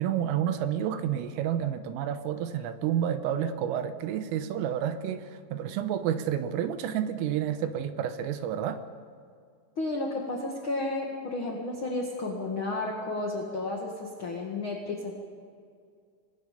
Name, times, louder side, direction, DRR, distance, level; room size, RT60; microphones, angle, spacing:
voice 1, 0.0-8.8, right 9 dB, 90° right, 9 dB, 3.7 m, -30 dB
voice 2, 9.7-15.1, left 2 dB, 50° left, -1 dB, 1.5 m, -32 dB
28.0 x 19.5 x 5.3 m, 2.2 s
omnidirectional pair, 5.7 m